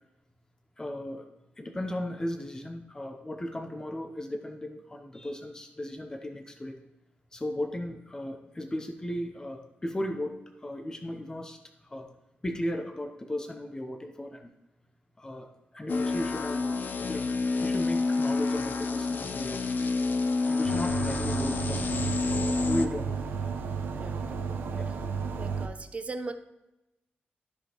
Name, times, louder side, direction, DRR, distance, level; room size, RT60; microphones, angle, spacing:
voice 1, 0.8-1.3 1.6-6.8 7.3-12.1 12.4-14.5 15.2-15.5 15.7-17.3 17.6-19.8 20.4-23.2 24.8-24.9, left 1 dB, 20° left, 5 dB, 0.7 m, -36 dB
sound 1, 15.9-22.9, left 3 dB, 55° left, 0.6 m, -29 dB
sound 2, 20.6-25.7, right 5 dB, 90° right, 0.8 m, -32 dB
voice 2, 24.0-24.9 25.4-26.3, right 3 dB, 35° right, 8 dB, 0.7 m, -40 dB
14.0 x 5.0 x 3.0 m, 0.97 s
cardioid pair, 105°, 4 cm